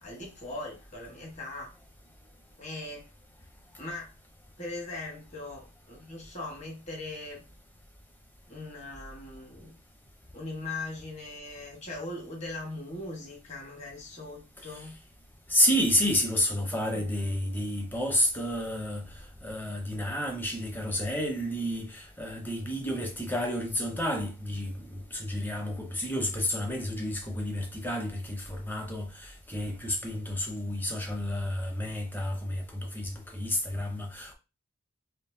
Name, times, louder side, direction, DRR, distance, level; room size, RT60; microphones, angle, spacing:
voice 1, 0.0-1.7 2.6-3.1 3.8-4.1 4.6-7.4 8.5-9.8 10.3-15.0 16.9-17.1, left 2 dB, 30° left, 1.4 m, -40 dB
voice 2, 15.5-19.0 19.4-34.3, equal, 10° left, 0.7 m, -30 dB
4.4 x 3.1 x 2.7 m
head